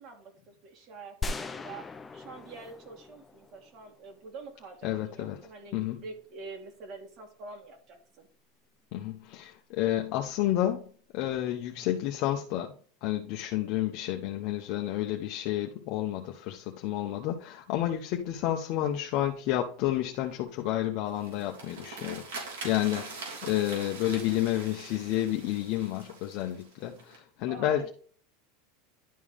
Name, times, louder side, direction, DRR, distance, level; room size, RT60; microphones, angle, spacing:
voice 1, 0.0-8.3 27.5-27.9, right 3 dB, 45° right, 2.7 m, -46 dB
sound 1, 1.2-4.1, left 3 dB, 15° left, 0.7 m, -39 dB
voice 2, 4.8-5.4 5.7-6.0 8.9-12.7 13.0-27.9, left 13 dB, 55° left, 1.0 m, -30 dB
sound 2, 21.1-27.2, right 4 dB, 85° right, 3.6 m, -43 dB
11.5 x 4.6 x 3.7 m
supercardioid pair, 135°, 0 cm